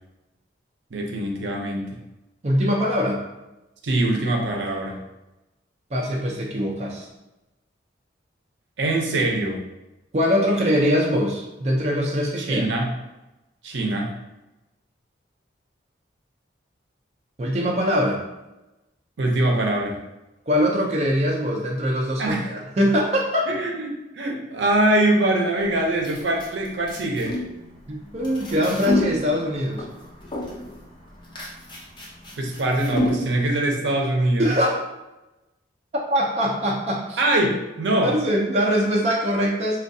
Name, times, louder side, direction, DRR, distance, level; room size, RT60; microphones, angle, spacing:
voice 1, 0.9-2.0 3.8-5.0 8.8-9.6 12.4-12.9 13.6-14.1 19.2-20.0 22.2-22.5 23.5-27.3 32.4-34.6 37.2-38.1, right 1 dB, 75° right, 0 dB, 0.6 m, -23 dB
voice 2, 2.4-3.2 5.9-7.1 10.1-12.7 17.4-18.2 20.5-23.5 27.9-29.8 34.4-34.8 35.9-37.2 38.0-39.8, equal, 35° right, -2 dB, 0.4 m, -22 dB
sound 1, 25.6-33.5, left 1 dB, 25° left, 0.6 m, -31 dB
4.3 x 2.3 x 2.6 m, 0.98 s
head